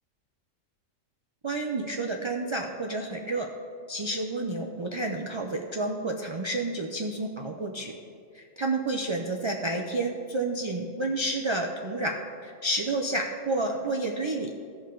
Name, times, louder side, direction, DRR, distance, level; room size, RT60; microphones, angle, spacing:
voice 1, 1.4-3.5 3.9-7.9 8.3-14.5, right 2 dB, 50° right, 1 dB, 0.3 m, -30 dB
16.0 x 5.5 x 3.8 m, 2.4 s
omnidirectional pair, 1.4 m